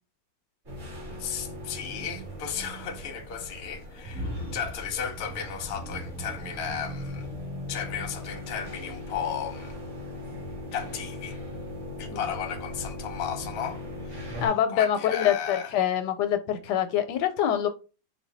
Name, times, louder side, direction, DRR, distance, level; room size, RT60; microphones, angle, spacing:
sound 1, 0.7-14.5, left 1 dB, 45° right, 2.1 m, -38 dB
voice 1, 1.2-7.3 7.7-9.7 10.7-11.4 12.0-14.4 14.7-15.7, left 8 dB, 55° left, 0.7 m, -35 dB
voice 2, 14.4-17.7, left 10 dB, 85° left, 1.2 m, -25 dB
3.9 x 2.2 x 3.9 m
omnidirectional pair, 1.8 m